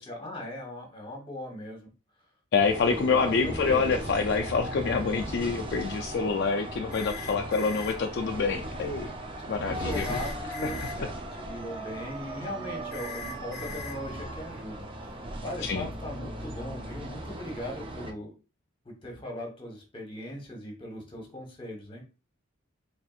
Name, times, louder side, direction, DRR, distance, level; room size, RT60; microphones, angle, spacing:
voice 1, 0.0-1.9 3.1-3.9 9.6-18.4 18.8-22.0, left 1 dB, 25° left, 1 dB, 1.1 m, -39 dB
voice 2, 2.5-9.1 9.5-10.0 10.6-10.9 15.6-15.9, left 5 dB, 55° left, 3 dB, 0.3 m, -27 dB
sound 1, 2.6-18.1, right 1 dB, 25° right, 0.5 m, -37 dB
sound 2, 6.9-7.9 9.9-10.9 12.9-13.9, left 7 dB, ahead, 1.1 m, -41 dB
4.2 x 3.5 x 2.4 m, 0.33 s
head